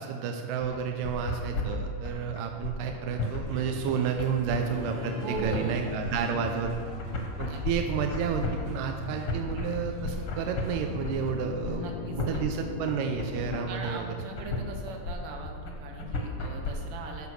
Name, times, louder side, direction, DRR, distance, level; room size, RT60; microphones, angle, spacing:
voice 1, 0.0-6.7 7.4-11.8 12.2-14.1, right 7 dB, 85° right, 4 dB, 2.0 m, -31 dB
sound 1, 0.6-16.7, left 3 dB, 60° left, 1.4 m, -34 dB
sound 2, 3.1-11.4, equal, 45° right, 1.5 m, -42 dB
sound 3, 4.6-7.9 10.9-13.7, left 7 dB, 80° left, 2.2 m, -40 dB
voice 2, 5.2-5.9 6.2-6.6 7.5-7.6 11.6-12.4 13.7-17.3, right 3 dB, 65° right, 2 dB, 2.6 m, -39 dB
13.5 x 5.0 x 6.4 m, 2.1 s
omnidirectional pair, 4.4 m